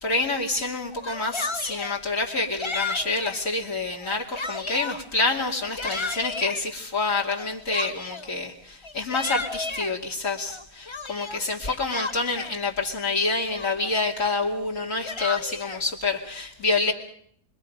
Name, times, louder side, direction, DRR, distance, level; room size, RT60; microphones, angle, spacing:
voice 1, 0.0-16.9, left 3 dB, 55° left, -2 dB, 3.0 m, -27 dB
Yell, 0.9-2.0 2.6-3.4 3.9-5.0 5.5-6.6 7.3-8.3 8.8-9.9 10.5-12.6 13.1-13.2 13.5-14.0 14.8-15.8, left 3 dB, 25° left, 0.7 m, -33 dB
29.0 x 22.5 x 5.2 m, 0.62 s
omnidirectional pair, 1.7 m